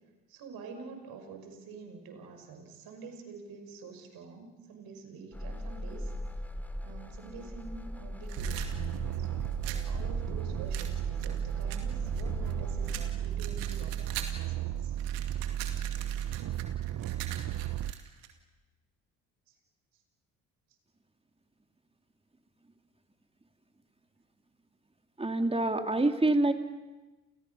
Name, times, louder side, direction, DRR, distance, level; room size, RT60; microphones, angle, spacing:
voice 1, 0.3-6.1 6.8-8.7 9.2-15.0 19.5-19.6, right 4 dB, 70° right, 5 dB, 5.7 m, -47 dB
sound 1, 5.3-13.2, left 1 dB, 5° left, 2.7 m, -39 dB
sound 2, 8.2-9.9 10.7-12.5 12.9-14.5 14.8-18.3, right 12 dB, 85° right, 2.4 m, -43 dB
sound 3, 8.4-17.9, right 11 dB, 50° right, 0.9 m, -34 dB
voice 2, 25.2-26.5, right 2 dB, 15° right, 6 dB, 2.8 m, -26 dB
30.0 x 29.5 x 5.6 m, 1.2 s
hypercardioid pair, 55°, 38 cm